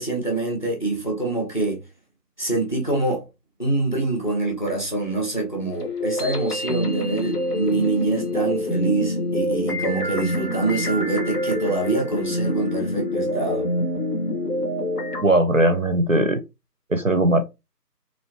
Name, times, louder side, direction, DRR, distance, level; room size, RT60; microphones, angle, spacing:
voice 1, 0.0-1.8 2.4-3.2 3.6-13.7, right 2 dB, 30° left, 0.8 m, -25 dB
sound 1, 5.8-15.2, left 1 dB, 65° left, 1.1 m, -26 dB
voice 2, 15.2-16.4 16.9-17.4, right 1 dB, 55° right, 0.5 m, -19 dB
3.1 x 2.9 x 2.8 m
figure-of-eight pair, 165°, 50 cm